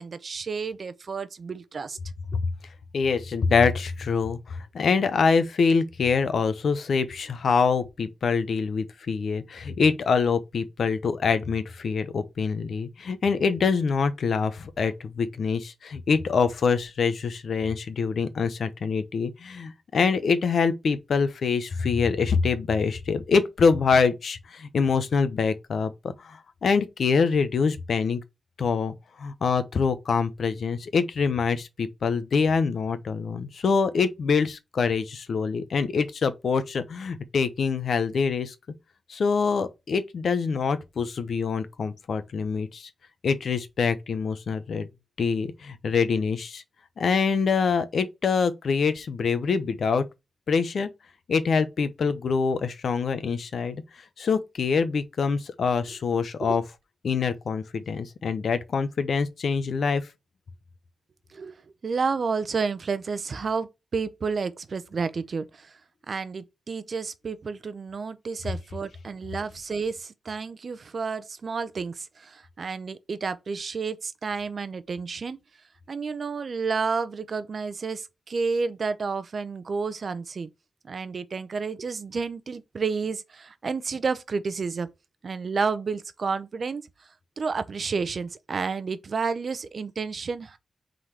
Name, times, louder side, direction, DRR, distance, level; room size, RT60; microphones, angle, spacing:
voice 1, 0.0-2.0 55.9-56.0 56.4-56.6 61.3-65.7 66.1-75.4 75.9-80.5 80.8-84.9 85.2-86.8 87.4-90.6, right 5 dB, 45° right, 0.6 m, -30 dB
voice 2, 2.9-28.2 28.6-38.5 39.1-42.9 43.2-44.9 45.2-46.6 47.0-50.1 50.5-50.9 51.3-53.8 54.2-56.6 57.0-60.1, left 5 dB, 65° left, 0.8 m, -25 dB
4.9 x 3.9 x 5.8 m
wide cardioid pair, 175°, 0 cm